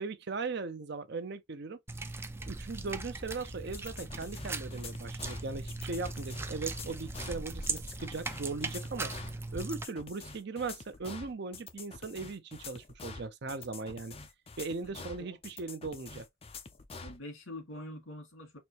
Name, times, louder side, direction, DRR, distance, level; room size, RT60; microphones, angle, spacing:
voice 1, 0.0-1.8 2.5-9.1 9.5-14.1 14.6-16.3, right 4 dB, 55° right, 0.6 m, -39 dB
sound 1, 1.9-9.8, right 3 dB, 10° right, 0.3 m, -39 dB
sound 2, 2.6-8.2, left 1 dB, 5° left, 2.0 m, -48 dB
sound 3, 3.7-17.2, left 4 dB, 30° left, 0.6 m, -47 dB
voice 2, 14.8-15.4 17.0-18.6, left 1 dB, 75° left, 2.1 m, -45 dB
4.2 x 2.8 x 3.0 m
head